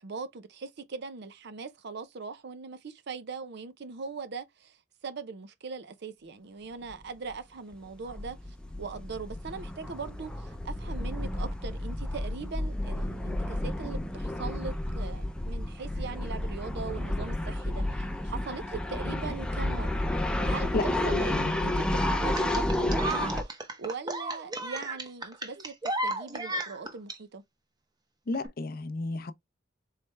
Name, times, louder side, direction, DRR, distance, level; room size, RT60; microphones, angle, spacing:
voice 1, 0.0-20.0 20.4-27.4, right 4 dB, 60° right, 0.6 m, -40 dB
sound 1, 6.9-7.0 7.3-7.4 7.7-23.4, left 1 dB, 5° left, 0.6 m, -31 dB
voice 2, 21.2-21.6 28.3-29.3, left 3 dB, 50° left, 0.5 m, -32 dB
sound 2, 22.4-27.2 28.3-28.5, right 1 dB, 20° right, 0.8 m, -33 dB
4.3 x 3.3 x 3.3 m
head